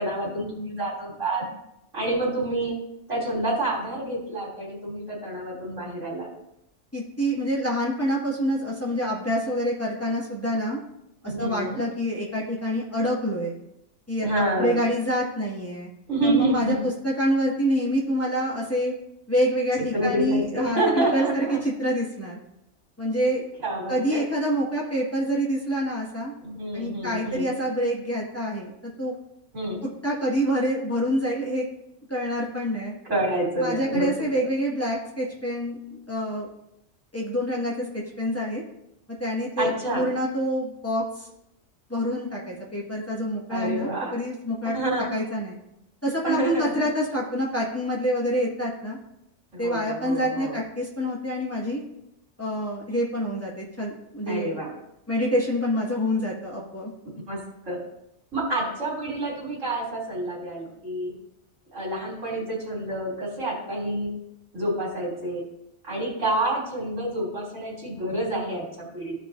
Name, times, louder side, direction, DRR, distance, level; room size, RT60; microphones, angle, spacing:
voice 1, 0.0-1.4 1.9-2.7 3.1-6.3 11.3-11.8 14.2-14.8 16.1-16.8 19.9-21.6 23.6-24.2 26.4-27.5 29.5-29.8 33.0-34.3 39.6-40.0 43.5-44.1 44.7-45.1 46.2-46.9 49.5-50.6 54.3-54.7 57.3-57.4 57.7-57.8 58.3-61.1 61.7-64.1 64.5-65.4 65.8-69.2, right 1 dB, 85° right, -4 dB, 3.4 m, -28 dB
voice 2, 6.9-10.8 11.2-13.5 14.1-14.3 14.6-15.9 16.2-16.8 17.0-18.9 19.3-22.4 23.0-23.5 23.9-26.3 26.7-28.7 29.0-29.1 30.0-31.6 32.1-32.9 33.6-36.5 37.1-38.6 39.2-41.3 41.9-45.6 46.0-49.0 49.6-51.8 52.4-54.6 55.1-56.9, equal, 10° left, -5 dB, 1.8 m, -26 dB
15.0 x 5.2 x 2.7 m, 0.83 s
omnidirectional pair, 1.3 m